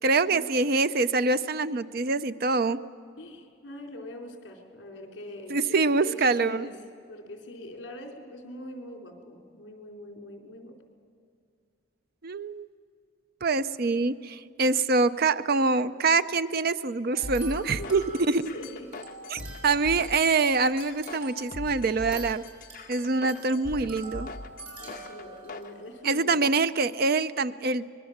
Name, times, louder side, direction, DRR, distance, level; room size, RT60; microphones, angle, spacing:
voice 1, 0.0-2.8 5.5-6.7 12.2-12.7 13.4-18.4 19.3-22.4 22.9-24.3 26.0-27.9, right 3 dB, 50° right, 13 dB, 0.5 m, -25 dB
voice 2, 3.2-5.8 6.0-6.7 7.1-10.8 17.6-18.9 24.8-26.4, left 1 dB, 60° left, 2 dB, 3.9 m, -42 dB
sound 1, 17.1-26.0, right 2 dB, 80° right, 6.8 m, -46 dB
sound 2, 17.2-25.7, left 2 dB, 45° left, 1.1 m, -40 dB
24.5 x 21.0 x 7.3 m, 2.3 s
head